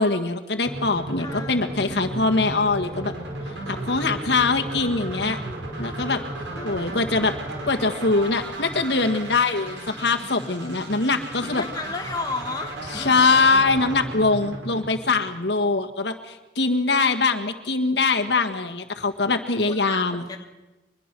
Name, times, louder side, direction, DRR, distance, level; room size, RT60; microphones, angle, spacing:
voice 1, 0.0-3.1 3.7-5.4 5.8-6.2 6.6-7.3 7.7-11.6 12.9-20.2, left 3 dB, 70° left, 6 dB, 1.6 m, -22 dB
sound 1, 0.7-15.6, right 1 dB, 80° right, 5.2 m, -34 dB
voice 2, 1.2-2.3 6.5-7.3 11.6-13.3 19.7-20.4, left 3 dB, 20° left, 4 dB, 1.4 m, -34 dB
24.0 x 21.0 x 6.1 m, 1.1 s
head